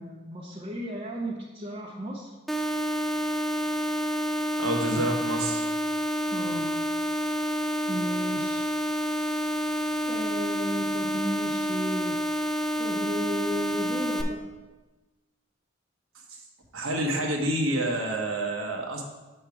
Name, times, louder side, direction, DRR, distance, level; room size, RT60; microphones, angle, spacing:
voice 1, 0.0-2.3 4.9-5.1 6.3-6.7 7.9-8.7 10.0-12.2 12.8-14.5, equal, 30° right, -3 dB, 0.7 m, -34 dB
sound 1, 2.5-14.2, equal, ahead, 0.4 m, -28 dB
voice 2, 4.6-5.7 16.3-16.4 16.7-19.0, right 1 dB, 90° right, 1 dB, 1.1 m, -28 dB
7.3 x 3.4 x 5.8 m, 1.1 s
head